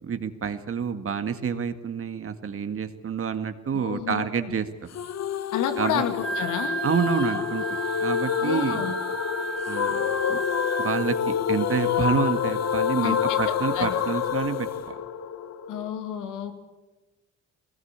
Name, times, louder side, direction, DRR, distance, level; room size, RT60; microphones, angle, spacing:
voice 1, 0.0-4.7 5.8-6.0 6.8-7.6 8.0-8.8 9.7-10.4 10.8-14.7, right 6 dB, 45° right, 9 dB, 1.8 m, -28 dB
voice 2, 3.8-4.4 5.5-6.8 8.4-8.9 13.0-13.4 13.7-13.9 15.7-16.5, left 9 dB, 90° left, 8 dB, 2.5 m, -30 dB
sound 1, 4.9-15.9, left 8 dB, 60° left, 1.3 m, -27 dB
Wind instrument woodwind instrument, 6.0-11.3, right 3 dB, 5° left, 1.7 m, -34 dB
21.0 x 19.5 x 8.8 m, 1.1 s
cardioid pair, 90°, 30 cm